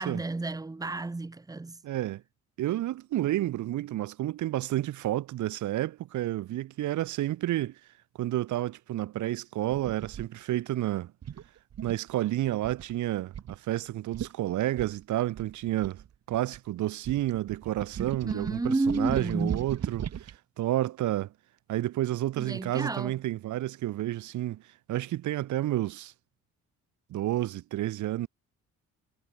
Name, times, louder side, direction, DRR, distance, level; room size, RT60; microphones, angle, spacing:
voice 1, 0.0-1.8 18.2-19.7 22.4-23.2, right 3 dB, 10° right, 1.0 m, -31 dB
voice 2, 1.8-2.2 2.6-7.8 8.2-11.1 11.8-21.3 21.7-24.6 24.9-26.1 27.1-28.3, right 14 dB, 75° right, 1.0 m, -30 dB
sound 1, 9.7-10.3 11.2-12.1 12.6-12.9 13.3-13.5 13.9-14.0 14.1-14.3 14.8-16.6 17.0-20.3, right 9 dB, 55° right, 3.0 m, -37 dB
cardioid pair, 90°, 30 cm